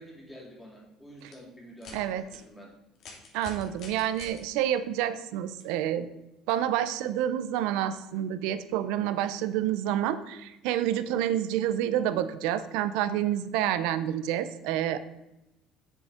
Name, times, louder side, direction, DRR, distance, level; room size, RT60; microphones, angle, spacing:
voice 1, 0.0-2.7, equal, 5° left, -4 dB, 3.4 m, -48 dB
sound 1, 1.2-1.3 1.8-2.0 2.3-2.4 2.9-4.4 5.6-5.7 6.5-6.6, left 4 dB, 60° left, 2.6 m, -45 dB
voice 2, 1.9-2.2 3.3-6.1 6.5-15.0, right 11 dB, 80° right, 13 dB, 0.6 m, -28 dB
7.2 x 7.1 x 5.0 m, 0.93 s
supercardioid pair, 105°, 0 cm